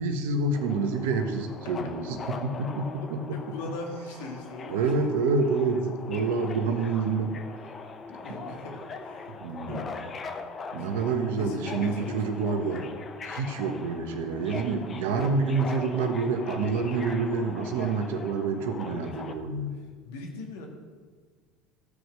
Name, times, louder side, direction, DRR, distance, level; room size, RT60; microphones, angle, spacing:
voice 1, 0.0-3.2 4.7-7.4 8.3-8.5 9.4-9.8 10.7-12.9 13.3-19.7, right 4 dB, 80° right, 6 dB, 1.3 m, -28 dB
Subway metro underground, 0.5-19.3, left 4 dB, 35° left, 0.9 m, -41 dB
voice 2, 3.3-5.1 6.2-6.6 8.1-10.2 10.8-10.9 11.3-13.0 13.6-13.9 18.8-19.1 20.0-20.7, left 2 dB, 80° left, 1 dB, 2.1 m, -41 dB
13.5 x 4.9 x 6.7 m, 1.5 s
hypercardioid pair, 90°, 0 cm